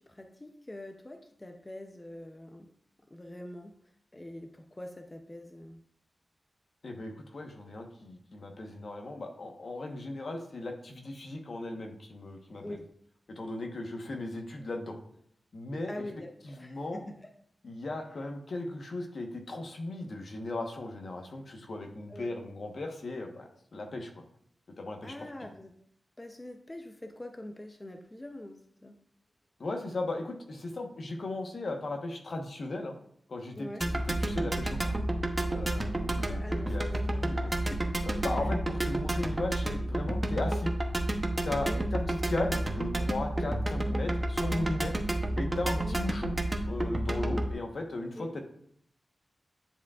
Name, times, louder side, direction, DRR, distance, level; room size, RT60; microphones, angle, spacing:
voice 1, 0.0-2.7 3.1-3.7 4.1-5.8 12.6-12.9 15.9-17.3 22.1-22.3 25.0-25.7 26.2-29.0 33.6-33.9 36.2-37.9 38.2-38.5 41.6-41.9 43.3-43.5 45.8-46.0 48.2-48.3, left 1 dB, 20° left, 4 dB, 0.5 m, -44 dB
voice 2, 6.8-12.8 13.3-15.0 15.5-16.1 16.4-17.0 17.6-24.2 24.8-25.3 29.6-33.0 33.3-35.0 35.5-37.5 38.0-40.7 41.4-44.9 45.3-46.4 46.6-48.4, left 2 dB, 60° left, 3 dB, 1.0 m, -37 dB
sound 1, 33.8-47.5, right 1 dB, 20° right, 0.7 m, -30 dB
10.0 x 4.8 x 2.4 m, 0.68 s
wide cardioid pair, 100°, 0 cm